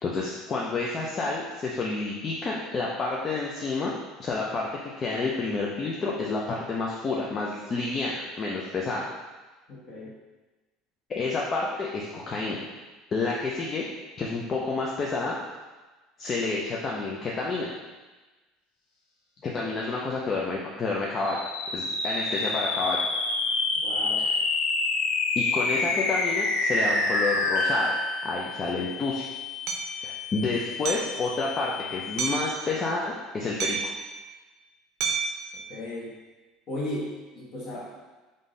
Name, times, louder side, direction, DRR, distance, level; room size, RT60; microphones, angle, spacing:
voice 1, 0.0-3.9 4.2-4.7 5.0-9.1 11.1-12.6 13.1-13.8 14.2-15.4 16.2-17.7 19.4-21.4 21.7-23.0 25.4-27.9 28.2-29.3 30.0-33.9, left 3 dB, 30° left, -3 dB, 0.4 m, -29 dB
voice 2, 9.7-10.1 19.6-19.8 23.8-24.3 35.7-36.1 36.7-37.8, left 1 dB, 45° left, -5 dB, 1.3 m, -35 dB
sound 1, 21.2-32.7, left 3 dB, 70° left, 0.6 m, -28 dB
Hammer, 29.7-29.9 30.9-31.2 32.2-32.5 33.6-34.0 35.0-35.4, right 5 dB, 55° right, 0.6 m, -29 dB
3.6 x 2.6 x 3.9 m, 1.2 s
cardioid pair, 135°, 0 cm